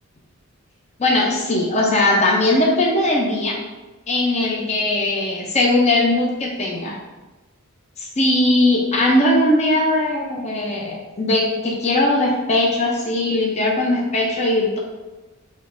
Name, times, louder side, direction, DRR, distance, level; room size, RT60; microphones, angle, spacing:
voice 1, 1.0-3.6 4.1-7.0 8.0-14.8, left 1 dB, 30° left, -2 dB, 0.6 m, -19 dB
6.2 x 3.1 x 2.6 m, 1.1 s
head